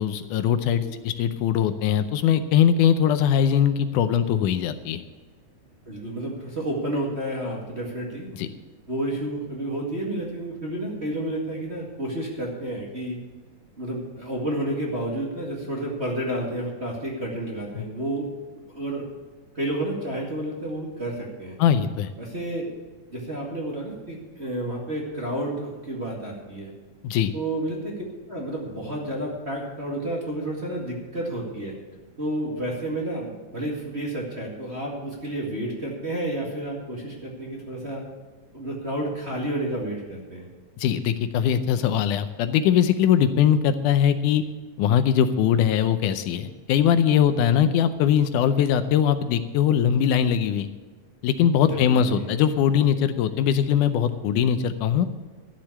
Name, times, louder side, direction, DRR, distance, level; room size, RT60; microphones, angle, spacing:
voice 1, 0.0-5.0 8.3-8.5 17.8-17.9 21.6-22.1 27.0-27.3 40.8-44.4 44.8-50.7 51.2-55.1, left 9 dB, 80° left, 10 dB, 2.1 m, -21 dB
voice 2, 5.9-8.3 8.9-13.2 13.8-18.3 18.7-19.1 19.5-21.6 22.2-22.7 23.1-26.7 27.3-27.9 28.3-31.7 32.2-38.0 38.5-40.5 51.9-52.4, right 1 dB, 25° right, -3 dB, 1.8 m, -30 dB
13.0 x 7.6 x 8.4 m, 1.4 s
omnidirectional pair, 3.7 m